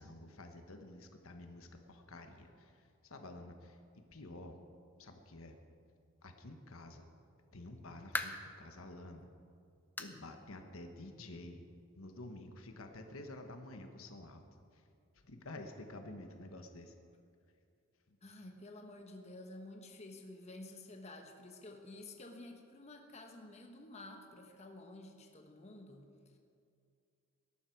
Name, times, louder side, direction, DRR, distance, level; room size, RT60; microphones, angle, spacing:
voice 1, 0.0-4.6 5.0-5.6 6.2-7.1 7.5-9.3 10.0-14.4 14.7-14.9 15.1-16.9 18.1-18.2, left 2 dB, 75° left, 5 dB, 1.2 m, -50 dB
sound 1, 7.5-8.6 9.1-9.2 10.0-10.2 10.6-10.7 11.2-11.3 12.3-12.4, left 2 dB, 10° left, 0.6 m, -41 dB
voice 2, 18.2-26.4, left 2 dB, 30° left, 3 dB, 1.2 m, -51 dB
19.5 x 11.5 x 4.6 m, 2.4 s
head